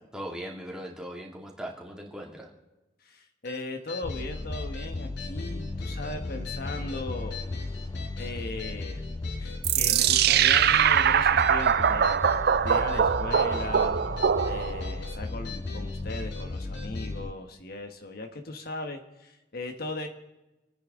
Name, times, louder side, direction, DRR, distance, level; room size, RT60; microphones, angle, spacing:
voice 1, 0.1-2.5, equal, 5° right, -1 dB, 2.4 m, -39 dB
voice 2, 3.0-7.9 8.2-9.0 9.4-12.2 12.6-14.0 14.4-20.1, left 2 dB, 55° left, 5 dB, 1.3 m, -38 dB
sound 1, 3.4-17.1, left 5 dB, 80° left, 5.0 m, -44 dB
sound 2, 4.0-17.3, left 2 dB, 25° left, 0.4 m, -35 dB
sound 3, 9.6-14.9, right 8 dB, 60° right, 0.5 m, -22 dB
28.0 x 9.9 x 3.8 m, 1.1 s
head